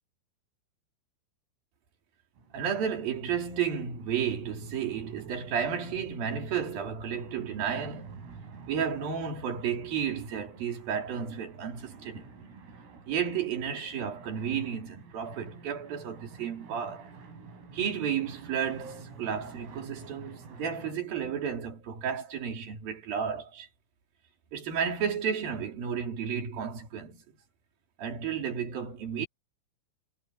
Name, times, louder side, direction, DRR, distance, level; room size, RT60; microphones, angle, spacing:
sound 1, 2.4-21.0, right 4 dB, 80° right, 9.2 m, -49 dB
voice 1, 2.5-8.1 8.7-12.3 13.1-17.1 17.7-23.7 24.5-27.2 28.0-29.3, right 7 dB, 50° right, 4.5 m, -32 dB
omnidirectional pair, 6.0 m